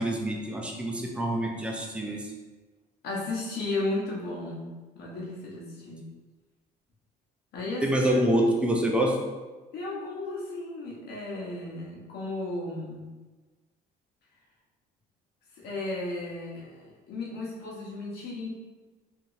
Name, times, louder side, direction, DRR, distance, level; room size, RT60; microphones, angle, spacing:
voice 1, 0.0-2.2 7.8-9.1, right 1 dB, 5° right, 0 dB, 0.5 m, -26 dB
voice 2, 3.0-6.0 7.5-8.8 9.7-13.1 15.5-18.5, left 2 dB, 70° left, -4 dB, 0.9 m, -35 dB
2.8 x 2.7 x 2.5 m, 1.3 s
cardioid pair, 110°, 17 cm